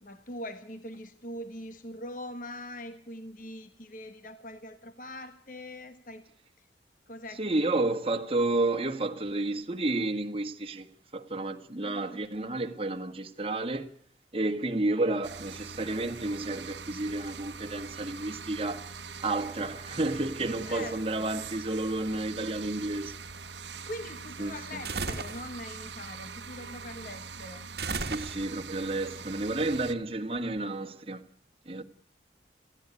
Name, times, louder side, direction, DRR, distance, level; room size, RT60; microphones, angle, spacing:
voice 1, 0.0-6.2 6.6-6.7 7.1-7.8 11.8-12.2 20.6-21.3 23.8-27.7, left 1 dB, 45° left, 1.3 m, -42 dB
voice 2, 7.4-13.9 14.3-18.9 19.2-23.2 24.4-24.8 28.0-31.2 31.6-31.8, right 2 dB, 30° right, 1.5 m, -31 dB
sound 1, 15.2-29.9, right 5 dB, 75° right, 1.1 m, -43 dB
sound 2, 24.8-25.5 27.8-28.7, right 4 dB, 55° right, 1.4 m, -34 dB
19.0 x 14.5 x 9.6 m
head